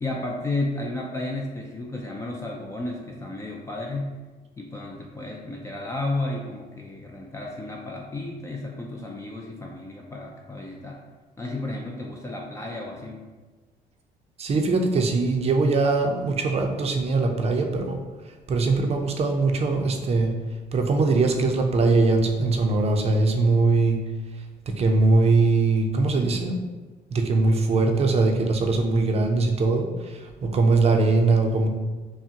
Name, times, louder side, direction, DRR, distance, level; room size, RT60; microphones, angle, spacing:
voice 1, 0.0-4.1 4.6-11.0 11.4-13.3, left 2 dB, 15° left, -1 dB, 0.4 m, -32 dB
voice 2, 14.4-18.0 18.5-20.3 20.7-24.0 24.7-26.6 27.1-31.7, right 3 dB, 40° right, 4 dB, 0.6 m, -21 dB
5.8 x 2.1 x 2.8 m, 1.3 s
cardioid pair, 110°, 17 cm